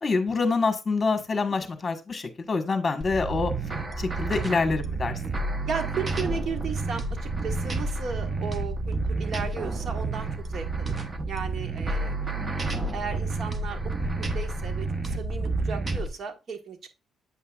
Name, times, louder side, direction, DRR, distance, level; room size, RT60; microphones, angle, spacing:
voice 1, 0.0-3.5 4.0-5.2 12.4-12.5, left 4 dB, 30° left, 6 dB, 1.5 m, -26 dB
sound 1, 3.0-16.1, right 3 dB, 30° right, 1.0 m, -30 dB
voice 2, 5.6-10.9 11.2-13.9 14.2-16.9, right 6 dB, 55° right, 7 dB, 1.4 m, -35 dB
8.4 x 5.5 x 2.4 m, 0.27 s
cardioid pair, 90°, 0 cm